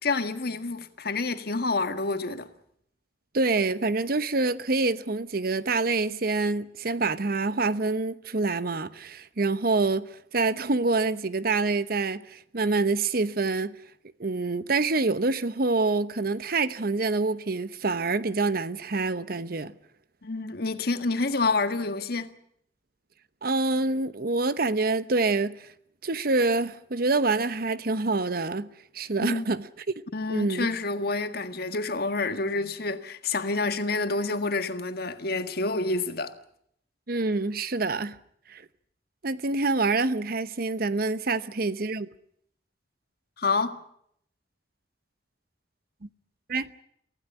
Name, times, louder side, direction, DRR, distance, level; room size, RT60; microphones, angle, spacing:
voice 1, 0.0-2.5 20.2-22.3 29.2-29.4 30.1-36.3 43.4-43.8, left 3 dB, 60° left, 1.7 m, -28 dB
voice 2, 3.3-13.8 14.2-19.7 23.4-25.7 26.0-28.7 28.9-29.7 30.3-30.7 37.1-38.2 38.5-38.6 39.2-42.1 46.5-46.7, right 3 dB, 55° right, 0.9 m, -26 dB
24.0 x 16.0 x 9.7 m
head